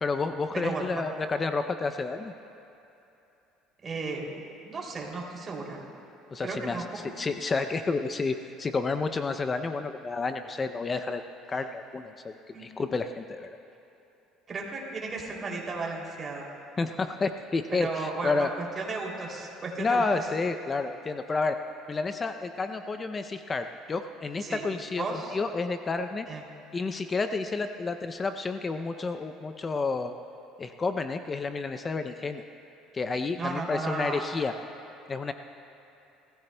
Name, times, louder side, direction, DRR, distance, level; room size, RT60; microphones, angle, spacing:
voice 1, 0.0-2.3 6.3-6.8 7.2-11.2 11.5-13.6 16.8-18.5 19.8-21.6 21.9-26.3 26.7-30.1 30.6-32.4 32.9-34.5 35.1-35.3, left 4 dB, 25° left, 8 dB, 0.5 m, -30 dB
voice 2, 0.5-1.0 3.8-4.4 4.6-5.8 6.4-7.1 12.5-12.8 14.5-16.5 17.7-20.0 24.4-24.6 25.0-25.4 26.3-26.4 33.3-34.2, right 3 dB, 30° right, -2 dB, 2.8 m, -34 dB
25.5 x 15.0 x 2.2 m, 2.9 s
cardioid pair, 120°, 0 cm